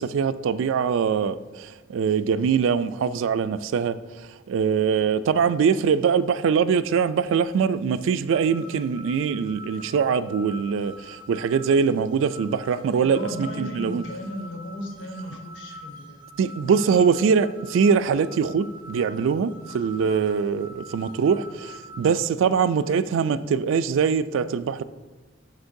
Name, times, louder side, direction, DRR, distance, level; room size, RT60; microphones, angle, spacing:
voice 1, 0.0-14.0 16.4-24.8, right 6 dB, 90° right, 0.3 m, -23 dB
sound 1, 8.3-22.2, equal, 25° right, 0.7 m, -45 dB
voice 2, 13.0-16.2 16.6-16.7 17.1-17.2, left 1 dB, 75° left, 1.0 m, -36 dB
8.1 x 6.5 x 2.6 m
head